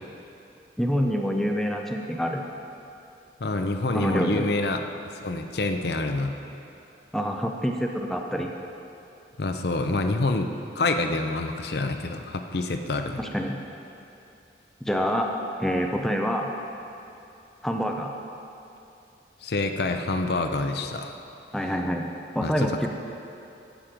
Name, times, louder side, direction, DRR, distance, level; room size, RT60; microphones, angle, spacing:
voice 1, 0.8-2.4 3.9-4.4 7.1-8.5 13.2-13.6 14.8-15.3 15.6-16.5 17.6-18.1 21.5-22.0 22.3-22.9, equal, ahead, 2 dB, 0.5 m, -26 dB
voice 2, 3.4-4.8 5.2-6.4 9.4-10.5 10.8-13.2 19.4-21.1 22.4-22.9, left 2 dB, 65° left, 6 dB, 0.6 m, -27 dB
12.0 x 7.6 x 5.1 m, 2.7 s
head